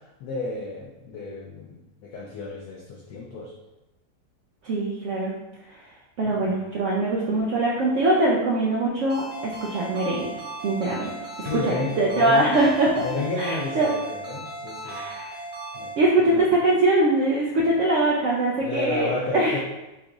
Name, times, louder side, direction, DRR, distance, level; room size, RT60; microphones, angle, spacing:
voice 1, 0.2-3.5 6.3-6.5 11.4-12.5 13.0-15.0 15.7-15.9 16.3-16.5 18.6-19.6, left 3 dB, 70° left, -2 dB, 1.0 m, -32 dB
voice 2, 4.6-5.3 6.2-10.3 10.6-11.1 11.5-13.1 13.4-13.9 14.8-15.4 16.0-19.6, right 2 dB, 70° right, -3 dB, 0.7 m, -22 dB
Ringtone, 9.1-16.0, right 2 dB, 5° left, 1.0 m, -37 dB
5.9 x 2.5 x 3.0 m, 1.0 s
omnidirectional pair, 1.9 m